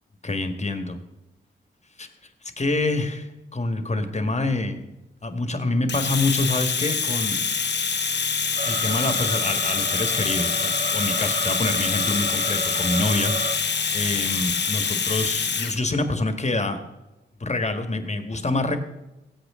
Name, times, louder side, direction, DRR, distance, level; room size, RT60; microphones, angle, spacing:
voice 1, 0.2-1.0 2.0-2.1 2.4-4.8 5.2-7.4 8.6-13.3 13.9-16.8 17.4-18.8, left 2 dB, 30° left, 7 dB, 1.8 m, -26 dB
Domestic sounds home sounds, 5.9-15.8, left 5 dB, 55° left, 1.0 m, -25 dB
sound 1, 8.6-13.6, right 3 dB, 45° right, 1.3 m, -33 dB
16.5 x 7.8 x 3.8 m, 1.0 s
supercardioid pair, 45°, 21 cm